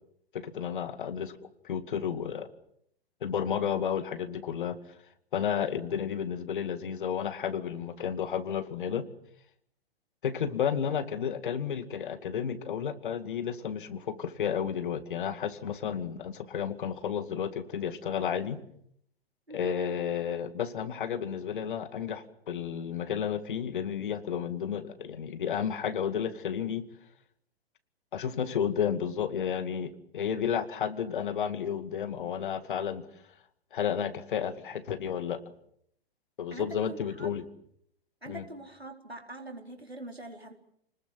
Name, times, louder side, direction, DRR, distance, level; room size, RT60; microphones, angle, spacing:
voice 1, 0.3-1.3 1.6-2.5 3.2-4.8 5.3-9.1 10.2-18.6 19.5-26.8 28.1-33.1 33.7-35.4 36.4-37.4 38.3-38.4, left 8 dB, 55° left, 10 dB, 2.2 m, -32 dB
voice 2, 36.5-37.3 38.2-40.5, right 1 dB, 90° right, 3 dB, 4.3 m, -43 dB
29.0 x 20.0 x 7.6 m, 0.72 s
figure-of-eight pair, 110°, 30 cm